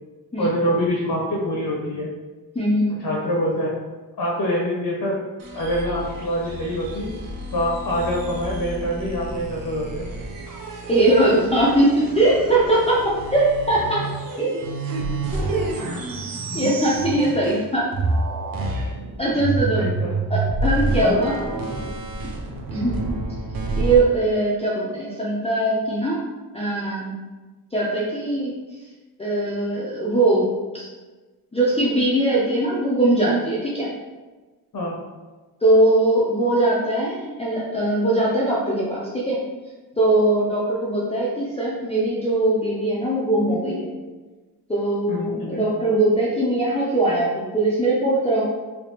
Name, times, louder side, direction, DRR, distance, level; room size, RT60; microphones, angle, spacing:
voice 1, 0.4-2.1 3.0-3.7 4.2-5.2 5.5-7.1 7.5-10.1 16.5-16.7 19.8-20.1 21.0-21.2 34.7-35.0 45.1-45.6, equal, 65° left, -3 dB, 0.7 m, -25 dB
voice 2, 2.5-3.0 10.9-14.1 14.4-14.5 15.3-15.7 16.5-17.9 19.2-19.9 20.3-21.3 22.7-23.0 23.7-26.2 26.5-27.2 27.7-28.5 29.2-30.5 30.7-30.9 31.5-33.9 35.6-39.4 40.0-43.9 44.7-48.5, right 1 dB, 15° left, -7 dB, 0.4 m, -21 dB
sound 1, 5.4-17.7 17.9-24.0, right 3 dB, 55° right, 0.5 m, -29 dB
3.4 x 2.8 x 2.7 m, 1.3 s
wide cardioid pair, 160°, 40 cm